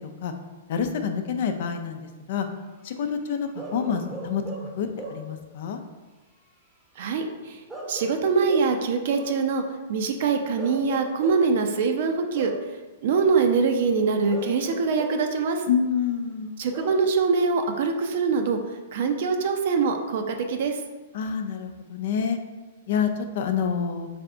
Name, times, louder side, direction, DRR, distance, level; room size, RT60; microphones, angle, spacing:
voice 1, 0.7-2.5 2.8-4.4 4.8-5.8 15.7-16.5 21.1-22.4 22.9-24.1, left 7 dB, 60° left, 6 dB, 0.5 m, -27 dB
Bark / Livestock farm animals working animals, 3.6-5.4 7.7-9.5 10.6-11.6 12.3-12.7 14.3-15.4 16.7-17.1, right 2 dB, 10° right, 0.8 m, -38 dB
voice 2, 7.0-7.6 7.9-9.6 9.9-12.5 13.0-15.6 16.6-18.6 18.9-20.8, right 5 dB, 60° right, 5 dB, 0.6 m, -23 dB
3.5 x 3.3 x 3.8 m, 1.2 s
hypercardioid pair, 125°, 0 cm